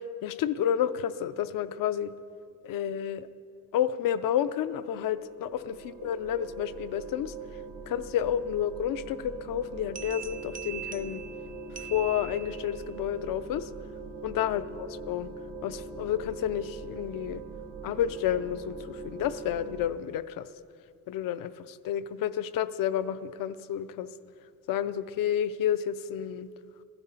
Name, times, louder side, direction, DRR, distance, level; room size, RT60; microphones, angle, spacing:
voice 1, 0.2-2.1 2.6-3.3 3.7-7.3 7.9-11.2 11.8-13.7 14.2-15.3 15.6-17.4 17.8-20.5 21.1-24.1 24.7-26.5, left 10 dB, 70° left, 13 dB, 0.6 m, -30 dB
sound 1, 5.0-19.9, right 4 dB, 85° right, 2.4 m, -42 dB
sound 2, 10.0-12.9, right 9 dB, 25° right, 0.4 m, -42 dB
15.5 x 12.5 x 5.6 m, 2.4 s
cardioid pair, 170°, 34 cm